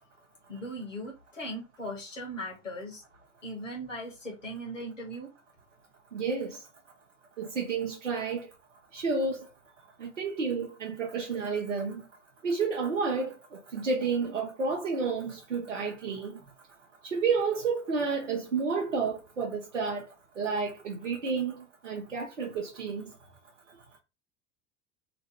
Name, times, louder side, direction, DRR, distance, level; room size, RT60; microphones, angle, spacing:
voice 1, 0.5-3.0 3.4-5.3, equal, 85° left, 1.6 m, -38 dB
voice 2, 6.1-6.6 7.4-8.5 8.9-9.5 10.0-12.0 12.4-13.3 13.7-16.4 17.1-20.1 20.4-23.1, right 4 dB, 85° right, 0.7 m, -30 dB
3.1 x 3.0 x 2.9 m
figure-of-eight pair, 70°, 37 cm